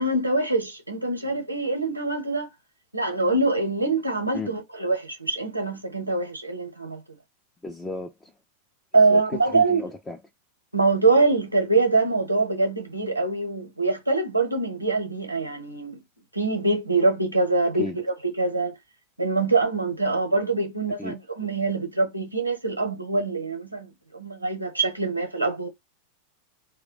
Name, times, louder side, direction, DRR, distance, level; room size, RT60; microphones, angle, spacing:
voice 1, 0.0-2.5 2.9-7.0 8.9-9.8 10.7-16.0 16.3-18.8 19.2-25.7, right 3 dB, 85° right, 0.9 m, -24 dB
voice 2, 7.6-8.3 9.1-10.2 17.8-18.0 21.0-21.1, left 3 dB, 10° left, 0.4 m, -34 dB
2.3 x 2.1 x 3.8 m
figure-of-eight pair, 90°, 0 cm